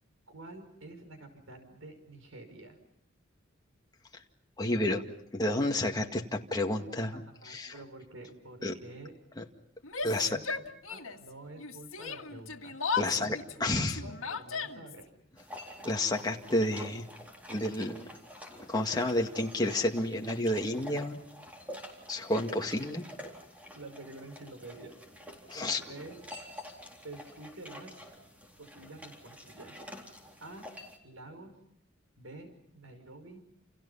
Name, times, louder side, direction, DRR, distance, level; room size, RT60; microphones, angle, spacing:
voice 1, 0.3-2.8 7.1-9.1 10.0-12.8 13.1-13.4 13.7-15.1 23.7-24.9 25.5-26.2 27.0-28.0 28.6-29.7 30.4-30.7 31.0-31.5 32.2-33.4, right 2 dB, 80° right, 7 dB, 5.5 m, -48 dB
voice 2, 4.6-5.0 5.3-7.7 8.6-8.7 9.4-9.5 10.0-10.4 13.0-13.4 13.6-14.0 15.8-17.1 17.5-18.1 18.7-21.2 22.1-23.0 25.5-25.8, left 1 dB, 20° left, 2 dB, 2.1 m, -30 dB
Yell, 9.8-11.3 11.6-15.0, left 5 dB, 85° left, 1.8 m, -36 dB
sound 1, 15.4-31.0, equal, 5° right, 3.9 m, -48 dB
29.5 x 29.5 x 5.7 m, 0.72 s
head